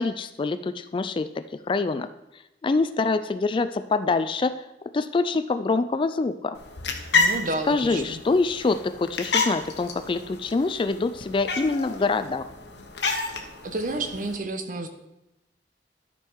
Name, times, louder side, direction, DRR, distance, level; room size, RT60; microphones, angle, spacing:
voice 1, 0.0-2.1 2.6-4.5 4.9-6.6 7.7-12.4, left 3 dB, 30° left, 11 dB, 0.3 m, -25 dB
sound 1, 6.5-14.4, left 3 dB, 75° left, 1.1 m, -30 dB
voice 2, 7.1-8.2 13.6-14.9, right 2 dB, 50° right, 6 dB, 0.9 m, -30 dB
12.5 x 5.3 x 4.6 m, 0.93 s
head